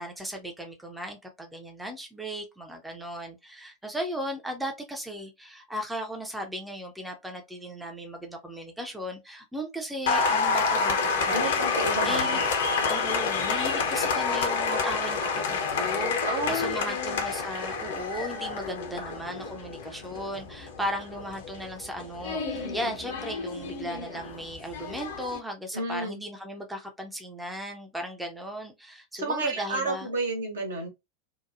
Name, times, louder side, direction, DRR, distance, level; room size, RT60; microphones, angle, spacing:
voice 1, 0.0-11.6 12.0-12.4 12.9-30.1, equal, 5° right, 0.5 m, -36 dB
Applause, 10.1-25.4, left 4 dB, 55° left, 0.6 m, -29 dB
voice 2, 11.3-12.4 16.2-17.2 25.7-26.2 29.2-30.9, right 2 dB, 70° right, 1.1 m, -31 dB
2.8 x 2.2 x 2.4 m
figure-of-eight pair, 90°, 0 cm